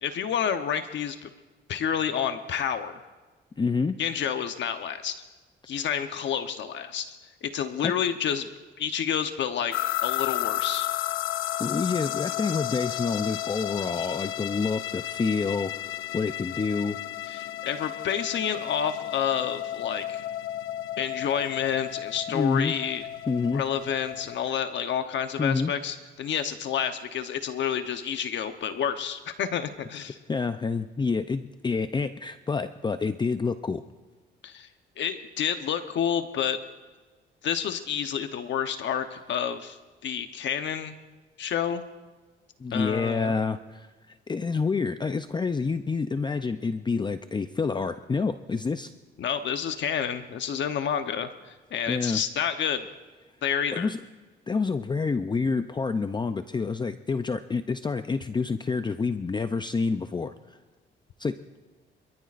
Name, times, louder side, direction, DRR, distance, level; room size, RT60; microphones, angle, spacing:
voice 1, 0.0-1.3 1.7-3.0 4.0-5.1 5.7-7.1 7.4-8.5 8.8-9.7 10.0-10.9 17.3-20.2 21.0-23.1 23.5-30.2 34.4-34.7 35.0-36.6 37.4-39.8 40.0-41.0 41.4-41.8 42.7-43.3 49.2-52.8 53.4-53.9, left 8 dB, 65° left, 8 dB, 0.9 m, -29 dB
voice 2, 3.6-4.0 7.8-7.9 11.6-15.7 16.1-17.0 22.3-22.7 23.3-23.6 25.4-25.7 30.3-33.8 42.6-48.9 51.9-52.2 53.7-54.0 54.5-60.3 61.2-61.4, left 4 dB, 20° left, 10 dB, 0.5 m, -28 dB
sound 1, 9.7-24.4, left 13 dB, 85° left, 0.5 m, -33 dB
26.5 x 14.0 x 2.5 m, 1.3 s
cardioid pair, 90°, 20 cm